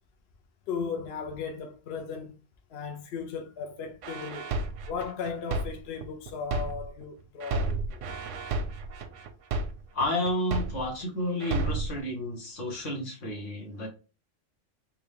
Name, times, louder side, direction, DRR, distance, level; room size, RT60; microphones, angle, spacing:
voice 1, 0.7-2.3 2.7-4.5 4.9-8.0, left 6 dB, 65° left, 0.8 m, -36 dB
sound 1, 4.0-7.0 7.4-11.0 11.4-12.0, right 3 dB, 85° right, 0.9 m, -32 dB
voice 2, 9.9-13.9, left 1 dB, 85° left, 1.6 m, -31 dB
3.7 x 2.2 x 3.3 m
omnidirectional pair, 1.2 m